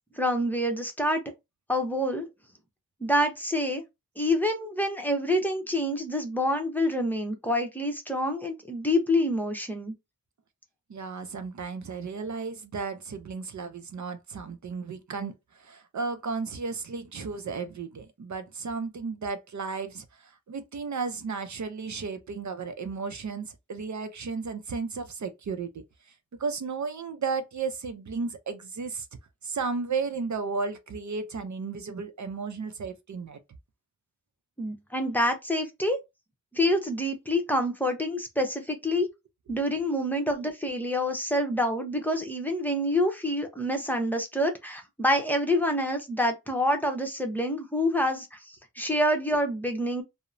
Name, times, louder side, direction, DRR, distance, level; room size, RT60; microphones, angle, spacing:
voice 1, 0.1-1.2 1.7-2.3 3.0-3.8 4.2-9.9 34.6-36.0 36.5-39.1 39.5-50.0, left 1 dB, 5° left, 0.8 m, -27 dB
voice 2, 10.9-26.1 26.4-29.1 29.4-33.4, right 4 dB, 65° right, 0.5 m, -34 dB
2.8 x 2.0 x 2.5 m
wide cardioid pair, 50°, 32 cm